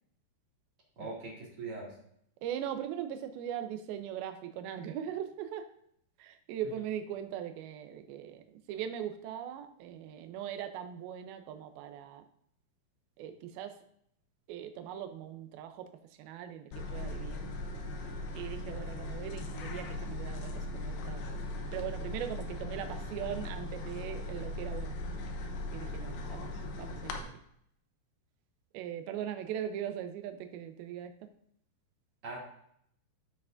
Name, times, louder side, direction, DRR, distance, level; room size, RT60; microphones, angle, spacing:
voice 1, 1.0-1.9 32.2-32.4, right 3 dB, 40° right, -4 dB, 2.7 m, -41 dB
voice 2, 2.4-5.7 6.2-12.2 13.2-13.7 14.5-15.8 16.2-17.5 18.3-21.2 21.7-25.0 25.7-27.3 28.7-31.1, right 10 dB, 75° right, 7 dB, 2.3 m, -40 dB
sound 1, 16.7-27.2, left 1 dB, 85° left, 3.2 m, -39 dB
14.5 x 5.9 x 2.6 m, 0.71 s
omnidirectional pair, 4.9 m